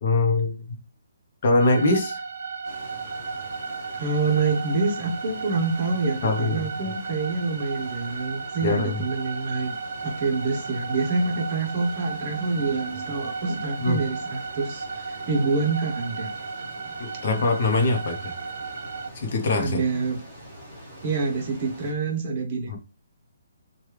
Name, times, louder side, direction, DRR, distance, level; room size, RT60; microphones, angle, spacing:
voice 1, 0.0-0.5 1.4-2.2 6.2-6.6 8.6-9.0 13.8-14.0 17.0-18.3 19.1-19.8 22.7-22.8, left 2 dB, 40° left, 0.8 m, -22 dB
sound 1, 1.6-19.1, right 5 dB, 60° right, 0.3 m, -35 dB
sound 2, 2.6-21.9, equal, 10° right, 1.4 m, -44 dB
voice 2, 3.9-9.7 10.0-16.3 19.6-20.2 21.0-22.8, right 4 dB, 35° right, 0.8 m, -26 dB
3.0 x 2.3 x 3.2 m
hypercardioid pair, 170°, 0 cm